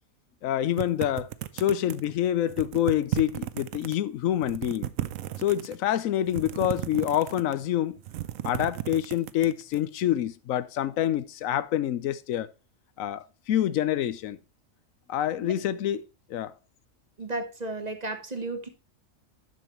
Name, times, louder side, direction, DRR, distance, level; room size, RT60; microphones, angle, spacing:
voice 1, 0.4-1.3 1.5-4.9 5.4-8.0 8.4-12.5 13.0-14.4 15.1-16.0 16.3-16.5, left 11 dB, 90° left, 1.0 m, -27 dB
sound 1, 0.8-2.1 2.5-4.0 4.3-5.8 6.3-7.6 8.0-9.8, right 13 dB, 90° right, 1.0 m, -34 dB
voice 2, 17.2-18.7, right 2 dB, 35° right, 1.0 m, -33 dB
10.5 x 6.4 x 3.1 m
omnidirectional pair, 1.3 m